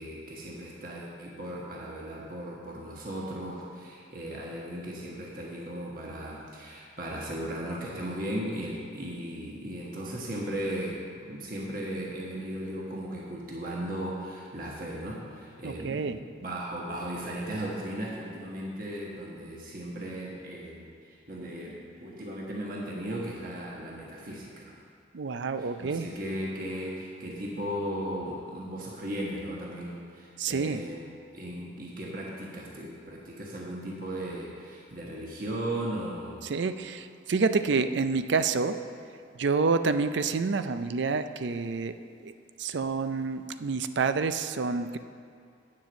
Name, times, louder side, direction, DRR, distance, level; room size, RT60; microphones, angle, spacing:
voice 1, 0.0-24.8 25.6-31.0 31.3-36.5, right 1 dB, 45° right, -4 dB, 1.3 m, -36 dB
voice 2, 15.6-16.2 25.1-26.1 30.4-30.8 36.4-38.8 39.4-42.0 42.2-42.3 42.6-45.0, right 4 dB, 70° right, 11 dB, 0.4 m, -28 dB
9.4 x 7.5 x 6.3 m, 2.4 s
head